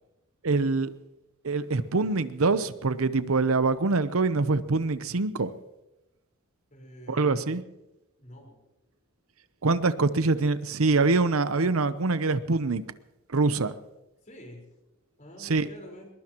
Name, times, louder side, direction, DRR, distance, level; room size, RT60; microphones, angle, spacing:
voice 1, 0.4-0.9 1.4-5.5 7.1-7.6 9.6-12.8 13.3-13.7 15.5-15.7, right 3 dB, 85° right, 0.8 m, -24 dB
voice 2, 6.7-7.6 8.2-8.6 14.2-14.6 15.2-16.1, left 1 dB, 35° left, 4.6 m, -47 dB
21.5 x 21.5 x 3.0 m
head